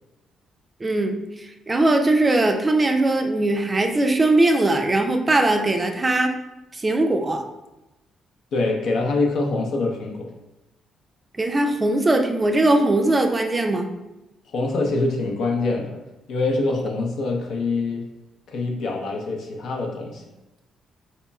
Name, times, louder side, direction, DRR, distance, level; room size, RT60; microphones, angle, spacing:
voice 1, 0.8-6.3 6.7-7.4 11.4-13.9, right 2 dB, 25° right, 4 dB, 0.4 m, -20 dB
voice 2, 8.5-10.3 14.5-16.0 16.3-18.0 18.5-20.2, left 3 dB, 70° left, 1 dB, 0.7 m, -24 dB
4.1 x 2.9 x 2.3 m, 0.98 s
cardioid pair, 90°, 0 cm